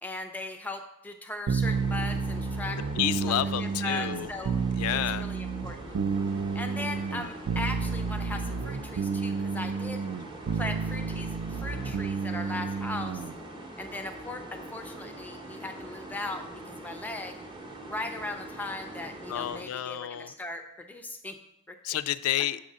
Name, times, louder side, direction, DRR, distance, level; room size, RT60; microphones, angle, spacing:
voice 1, 0.0-2.8 3.3-4.6 4.9-6.0 6.5-10.0 10.5-13.2 13.8-17.4 17.8-21.4 21.7-21.8, left 2 dB, 10° left, 6 dB, 0.4 m, -38 dB
sound 1, 1.5-13.3, right 5 dB, 80° right, 0.4 m, -31 dB
sound 2, 1.6-19.6, right 1 dB, 20° right, 0.7 m, -43 dB
voice 2, 3.0-4.3 4.8-5.3 19.3-20.3 21.8-22.6, left 12 dB, 85° left, 15 dB, 0.3 m, -30 dB
6.8 x 3.7 x 5.2 m, 0.91 s
head